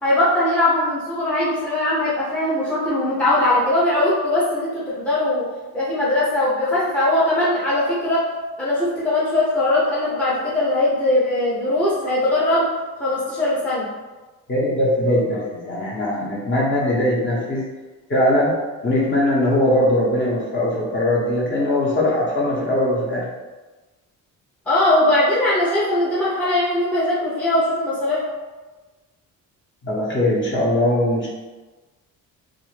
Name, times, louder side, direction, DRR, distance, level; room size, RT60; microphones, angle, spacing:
voice 1, 0.0-5.4 5.7-8.3 8.6-12.7 13.0-13.9 24.7-28.2, left 1 dB, 5° left, -9 dB, 0.5 m, -20 dB
voice 2, 14.5-17.6 18.1-18.5 18.8-23.2 29.8-31.3, left 1 dB, 35° left, -5 dB, 0.8 m, -20 dB
2.5 x 2.4 x 3.2 m, 1.2 s
cardioid pair, 135°, 35 cm